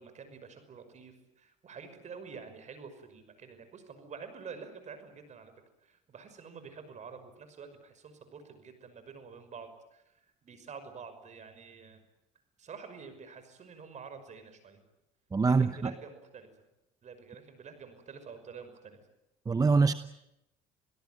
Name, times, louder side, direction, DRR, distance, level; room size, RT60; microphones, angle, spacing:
voice 1, 0.0-5.5 5.8-10.1 10.4-12.0 12.6-14.8 15.4-16.5 17.0-19.0, right 5 dB, 45° right, 9 dB, 5.8 m, -48 dB
voice 2, 15.3-15.9 19.5-19.9, right 4 dB, 20° right, 13 dB, 0.8 m, -24 dB
28.5 x 17.0 x 9.4 m, 0.88 s
supercardioid pair, 85°, 17 cm